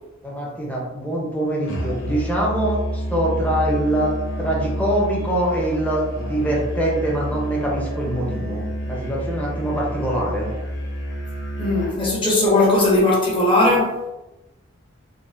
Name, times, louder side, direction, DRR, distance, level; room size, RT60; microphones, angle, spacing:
voice 1, 0.2-10.5, right 1 dB, 10° left, -3 dB, 0.6 m, -24 dB
Musical instrument, 1.7-12.0, equal, 75° left, 0.8 m, -29 dB
voice 2, 11.6-14.0, left 2 dB, 25° left, -4 dB, 0.9 m, -18 dB
3.9 x 2.1 x 2.4 m, 1.0 s
head